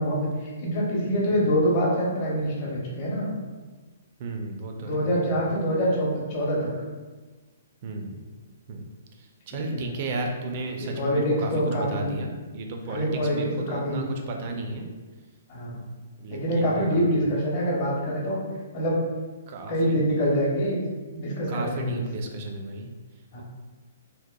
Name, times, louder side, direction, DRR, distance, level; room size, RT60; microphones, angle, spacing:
voice 1, 0.0-3.3 4.8-6.7 9.5-9.9 10.8-12.1 12.8-14.1 15.5-15.8 16.3-18.4 18.7-19.0 19.7-20.8 21.1-22.0 23.3-23.4, equal, 40° left, -4 dB, 0.7 m, -25 dB
voice 2, 4.2-5.4 7.8-8.2 8.7-8.8 9.2-14.9 16.2-17.4 19.5-20.0 21.5-22.9, right 2 dB, 40° right, 3 dB, 0.4 m, -34 dB
2.8 x 2.1 x 2.2 m, 1.3 s
hypercardioid pair, 150°, 0 cm